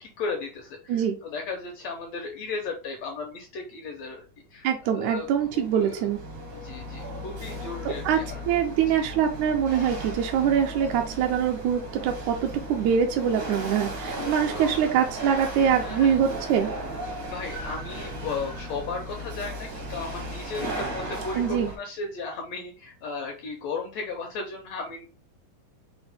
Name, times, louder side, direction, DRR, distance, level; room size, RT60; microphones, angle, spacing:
voice 1, 0.0-4.2 4.5-5.3 5.5-6.1 6.5-8.4 8.9-9.0 14.2-14.8 15.8-16.1 17.3-25.0, left 4 dB, 75° left, 2 dB, 1.6 m, -35 dB
voice 2, 4.6-6.2 7.9-8.2 8.5-16.7 21.4-21.7, right 8 dB, 80° right, 3 dB, 1.7 m, -24 dB
Chatter / Hiss / Rattle, 4.9-21.8, right 1 dB, 65° right, 1.1 m, -36 dB
6.1 x 2.1 x 3.4 m, 0.34 s
omnidirectional pair, 3.7 m